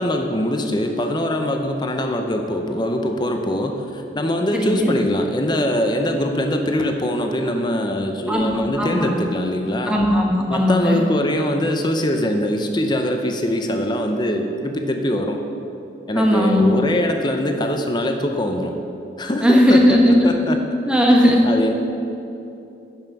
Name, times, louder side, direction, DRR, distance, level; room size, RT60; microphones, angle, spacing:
voice 1, 0.0-10.0 10.5-15.4 16.1-18.7 19.2-20.6 21.4-21.7, left 1 dB, 25° left, 4 dB, 0.6 m, -22 dB
voice 2, 4.5-4.9 8.3-8.4 8.8-9.1 9.9-11.0 16.2-16.7 19.4-20.4 20.9-21.5, equal, 5° right, -1 dB, 0.9 m, -16 dB
9.1 x 5.7 x 5.9 m, 2.8 s
head